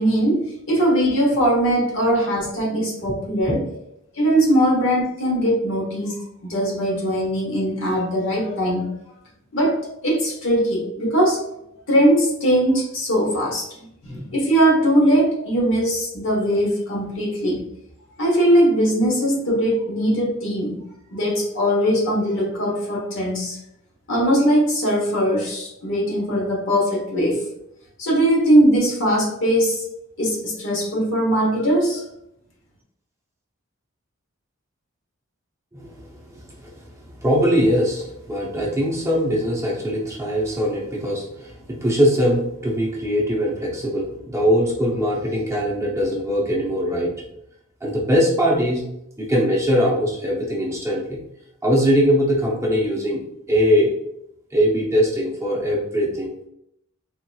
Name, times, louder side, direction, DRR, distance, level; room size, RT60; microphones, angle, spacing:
voice 1, 0.0-3.6 4.1-9.0 9.5-11.4 11.9-13.7 14.0-17.7 18.2-20.8 21.1-23.6 24.1-27.5 28.0-29.8 30.2-32.1, equal, 60° left, -2 dB, 1.1 m, -20 dB
voice 2, 35.7-47.1 47.8-48.8 49.2-51.2 51.6-53.2 53.5-53.9 54.5-56.3, equal, 15° right, -3 dB, 0.6 m, -21 dB
3.6 x 2.9 x 2.2 m, 0.78 s
head